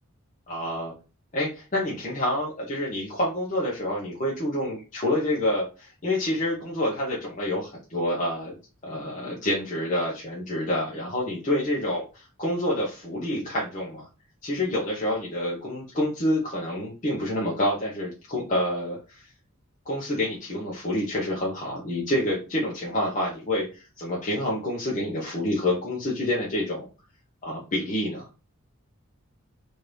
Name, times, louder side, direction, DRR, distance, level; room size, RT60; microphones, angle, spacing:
voice 1, 0.5-0.9 1.3-8.5 8.8-12.1 12.4-14.1 14.4-19.3 19.9-26.9 27.4-28.3, left 1 dB, 35° left, -5 dB, 0.8 m, -28 dB
3.1 x 2.6 x 3.3 m, 0.32 s
head